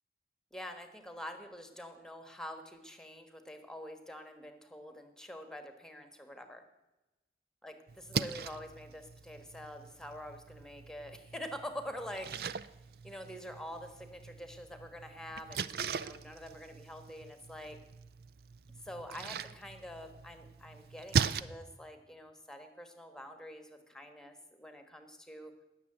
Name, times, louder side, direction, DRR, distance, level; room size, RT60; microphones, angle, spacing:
voice 1, 0.5-6.6 7.6-12.6 13.0-17.8 18.8-25.5, equal, 5° left, 7 dB, 1.4 m, -46 dB
Splash splatter, 7.9-21.4, right 6 dB, 55° right, 0.5 m, -40 dB
19.0 x 7.1 x 7.9 m, 1.0 s
head